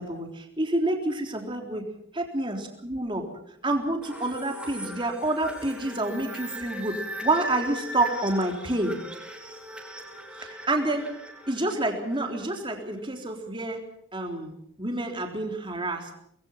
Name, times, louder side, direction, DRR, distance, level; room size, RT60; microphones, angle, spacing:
voice 1, 0.0-1.9 2.1-3.3 3.6-9.0 10.4-11.1 11.5-13.9 14.1-16.1, right 2 dB, 25° right, 3 dB, 3.7 m, -28 dB
sound 1, 4.0-12.6, right 1 dB, 5° right, 4.2 m, -39 dB
25.5 x 21.0 x 5.9 m, 0.72 s
head